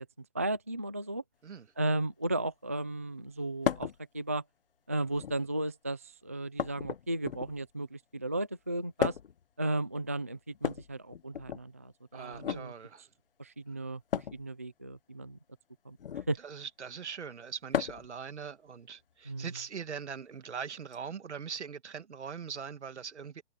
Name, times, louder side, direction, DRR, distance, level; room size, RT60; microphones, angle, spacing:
voice 1, 0.0-1.2 1.8-4.4 4.9-9.2 9.6-12.7 13.4-14.0 14.3-15.4 15.8-16.0 16.3-16.4 19.3-19.5, right 2 dB, 15° right, 0.4 m, -35 dB
sound 1, 3.6-4.0 5.0-5.5 6.6-7.7 9.0-9.4 10.5-11.6 12.3-12.6 14.1-14.4 16.0-16.4 17.7-18.1 19.6-19.7 20.9-21.0, left 8 dB, 50° left, 1.3 m, -34 dB
voice 2, 12.1-13.1 16.4-23.4, right 6 dB, 70° right, 2.1 m, -41 dB
hypercardioid pair, 160°, 35 cm